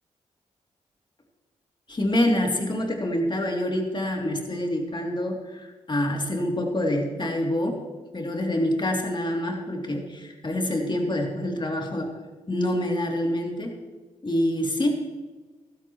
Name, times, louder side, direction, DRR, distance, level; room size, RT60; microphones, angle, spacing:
voice 1, 1.9-7.8 8.1-12.2 12.5-13.7 14.2-14.9, left 1 dB, 35° left, 0 dB, 3.1 m, -26 dB
16.0 x 12.0 x 3.2 m, 1.3 s
supercardioid pair, 45°, 14 cm